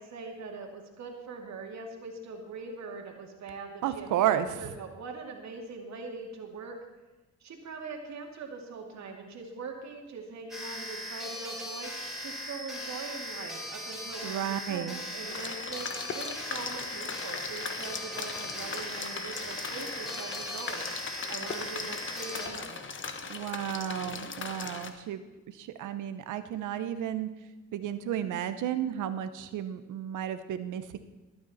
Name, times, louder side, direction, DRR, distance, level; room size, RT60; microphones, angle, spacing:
voice 1, 0.0-6.7 7.4-20.8 21.3-22.8, right 4 dB, 65° right, 2 dB, 2.4 m, -42 dB
voice 2, 3.8-4.5 14.2-14.9 23.3-25.2 25.6-27.3 27.7-31.0, right 10 dB, 80° right, 11 dB, 1.0 m, -32 dB
sound 1, 10.5-22.5, equal, ahead, 4.5 m, -39 dB
sound 2, 15.3-24.9, left 5 dB, 40° left, 1.3 m, -39 dB
20.5 x 9.5 x 4.2 m, 1.1 s
cardioid pair, 90°, 30 cm